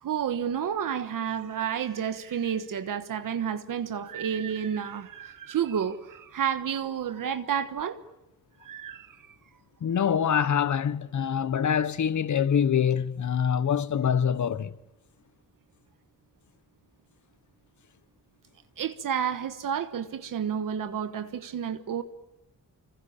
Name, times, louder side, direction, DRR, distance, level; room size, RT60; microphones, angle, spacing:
voice 1, 0.0-8.0 8.6-9.3 18.8-22.0, right 8 dB, 75° right, 1.3 m, -30 dB
voice 2, 9.8-14.8, left 8 dB, 60° left, 1.2 m, -25 dB
25.5 x 25.0 x 8.7 m
cardioid pair, 60°, 33 cm